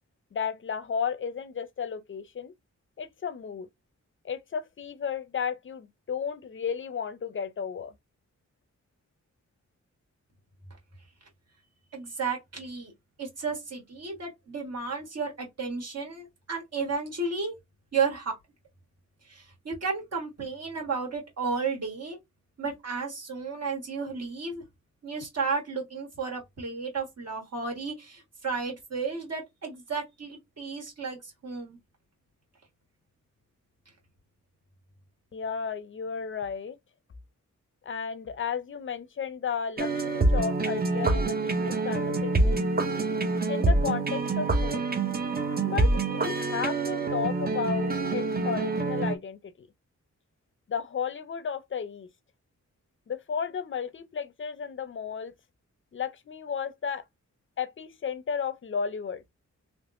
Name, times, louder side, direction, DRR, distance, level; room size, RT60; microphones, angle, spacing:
voice 1, 0.3-2.5 3.0-3.7 4.2-7.9 35.3-36.8 37.8-42.6 43.5-44.8 45.6-49.7 50.7-52.1 53.1-55.3 55.9-57.0 57.6-59.2, left 6 dB, 45° left, 0.5 m, -33 dB
voice 2, 11.9-12.9 13.2-17.5 17.9-18.3 19.2-22.2 22.6-24.6 25.0-31.8, right 4 dB, 55° right, 1.6 m, -33 dB
sound 1, 39.8-49.1, right 2 dB, 30° right, 0.5 m, -26 dB
3.4 x 3.0 x 2.5 m
wide cardioid pair, 175°, 30 cm